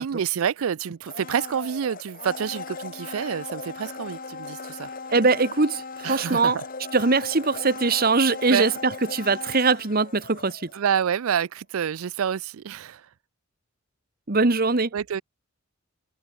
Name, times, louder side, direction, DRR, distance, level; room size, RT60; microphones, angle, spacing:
voice 1, 0.0-4.9 6.0-6.6 8.5-8.7 10.7-13.0 14.9-15.2, right 8 dB, 75° right, 0.4 m, -28 dB
Domestic sounds home sounds, 1.0-11.0 11.3-11.4, left 4 dB, 40° left, 1.7 m, -38 dB
voice 2, 5.1-6.6 6.9-10.7 14.3-14.9, right 3 dB, 45° right, 1.2 m, -22 dB
head